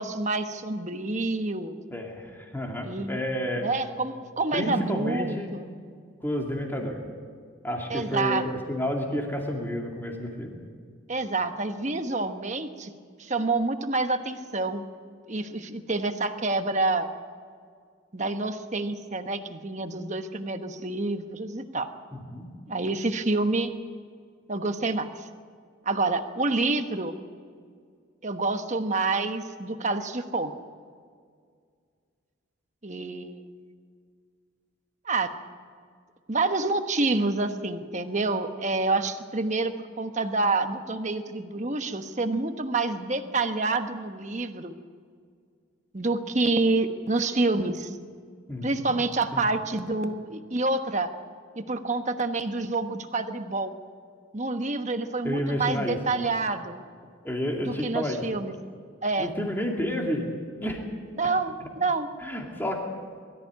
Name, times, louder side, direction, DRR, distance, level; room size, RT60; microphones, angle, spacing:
voice 1, 0.0-1.8 2.8-3.2 3.6-5.7 7.9-8.4 11.1-12.9 13.2-14.8 15.3-17.1 18.1-21.9 22.7-23.7 24.5-25.3 25.8-27.2 28.2-30.5 32.8-33.4 35.0-35.3 36.3-44.7 45.9-48.0 48.6-51.1 51.5-53.7 54.3-56.8 57.6-58.5 59.0-59.3 61.2-62.1, right 3 dB, 35° right, 7 dB, 1.2 m, -28 dB
voice 2, 1.9-3.7 4.5-5.5 6.2-7.0 7.6-10.6 22.1-22.5 48.5-48.8 49.3-49.4 55.2-56.0 57.2-58.2 59.2-60.2 60.6-60.8 62.2-62.8, equal, 10° left, 0 dB, 2.5 m, -30 dB
22.0 x 14.0 x 9.5 m, 2.1 s
head